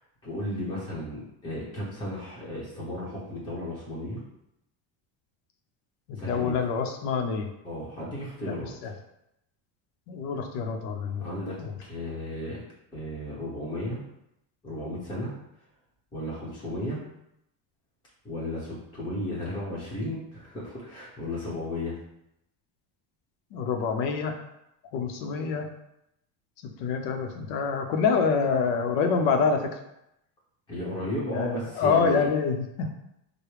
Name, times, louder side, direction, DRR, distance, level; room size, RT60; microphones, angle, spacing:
voice 1, 0.2-4.2 6.2-6.6 7.6-8.9 11.2-11.5 11.8-12.6 12.9-14.0 14.6-15.3 16.1-17.0 18.2-21.9 30.7-32.3, left 1 dB, 10° left, -7 dB, 0.9 m, -34 dB
voice 2, 6.1-7.5 8.4-8.5 8.8-8.9 10.1-11.3 11.6-11.7 23.5-24.4 24.9-25.7 26.8-29.7 31.3-32.9, left 5 dB, 65° left, 5 dB, 0.8 m, -26 dB
4.9 x 2.2 x 4.8 m, 0.82 s
cardioid pair, 170°, 44 cm